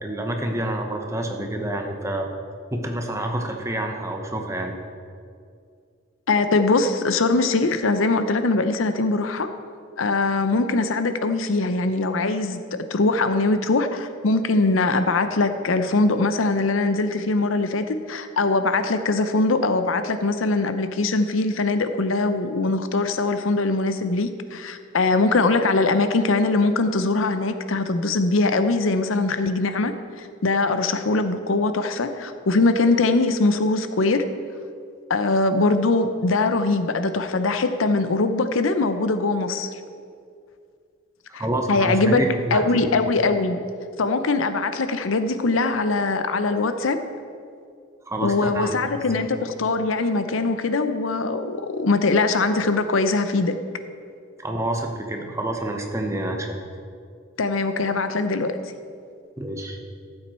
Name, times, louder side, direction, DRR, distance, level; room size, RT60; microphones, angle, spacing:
voice 1, 0.0-2.3 2.7-4.8 41.3-42.6 48.1-48.8 54.4-56.6 59.4-59.8, right 1 dB, 15° right, 3 dB, 1.0 m, -28 dB
voice 2, 6.3-9.5 10.0-12.6 12.9-34.3 35.1-39.7 41.3-43.6 44.0-47.0 48.2-53.6 57.4-58.6, left 3 dB, 85° left, 10 dB, 0.7 m, -22 dB
13.5 x 7.8 x 4.3 m, 2.3 s
head